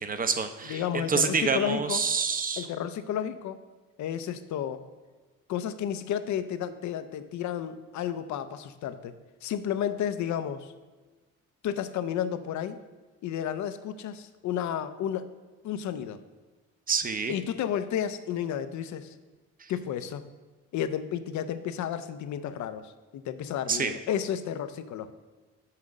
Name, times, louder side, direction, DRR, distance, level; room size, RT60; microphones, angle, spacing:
voice 1, 0.0-2.7 16.9-17.3 19.6-19.7 23.7-23.9, right 5 dB, 30° right, 8 dB, 0.6 m, -27 dB
voice 2, 0.6-2.0 2.6-3.6 4.0-4.8 5.5-9.1 9.4-10.7 11.6-12.8 13.2-15.3 15.6-16.2 17.3-19.1 19.7-20.3 20.7-25.1, left 9 dB, 70° left, 12 dB, 0.6 m, -32 dB
5.7 x 4.7 x 6.3 m, 1.3 s
cardioid pair, 90°, 30 cm